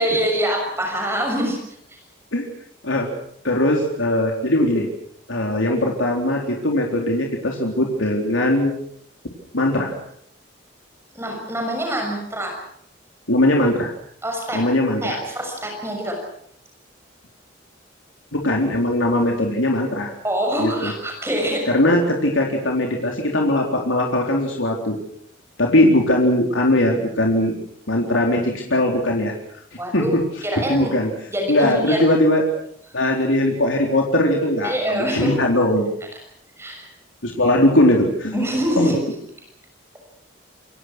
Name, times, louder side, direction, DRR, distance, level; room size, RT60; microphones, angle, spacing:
voice 1, 0.0-1.6 11.1-12.6 14.2-14.6 15.0-16.2 20.2-21.7 29.8-30.1 30.4-31.0 31.3-32.0 34.6-35.4 36.6-36.9 38.3-38.9, equal, 15° right, 2 dB, 6.6 m, -24 dB
voice 2, 3.4-4.9 5.3-8.7 9.5-9.9 13.3-13.9 14.5-15.2 18.3-20.1 20.6-20.9 21.7-25.0 25.6-27.5 27.9-29.3 29.9-30.2 30.5-31.1 31.5-32.4 32.9-35.9 37.2-38.5 38.8-38.9, left 1 dB, 80° left, 0 dB, 4.0 m, -20 dB
28.0 x 23.5 x 6.3 m, 0.67 s
head